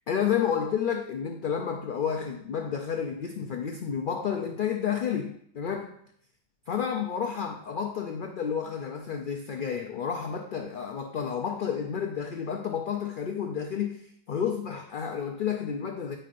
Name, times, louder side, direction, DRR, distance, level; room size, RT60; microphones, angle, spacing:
voice 1, 0.1-5.9 6.7-16.2, left 7 dB, 75° left, 4 dB, 0.4 m, -30 dB
8.9 x 5.5 x 2.5 m, 0.66 s
omnidirectional pair, 1.5 m